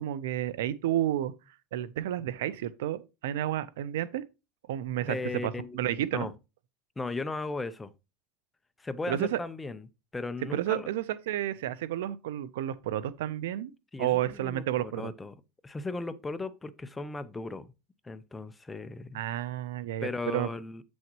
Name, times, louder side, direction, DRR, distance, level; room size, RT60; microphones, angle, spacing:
voice 1, 0.0-1.3 1.7-4.2 4.7-6.3 9.1-9.4 10.5-13.7 14.0-15.1 19.1-20.5, right 12 dB, 90° right, 0.7 m, -31 dB
voice 2, 5.1-6.3 7.0-7.9 8.8-9.8 10.1-10.9 13.9-15.3 15.6-17.7 18.0-19.2 20.0-20.8, left 3 dB, 10° left, 0.6 m, -36 dB
8.4 x 6.3 x 3.0 m
supercardioid pair, 130°, 0 cm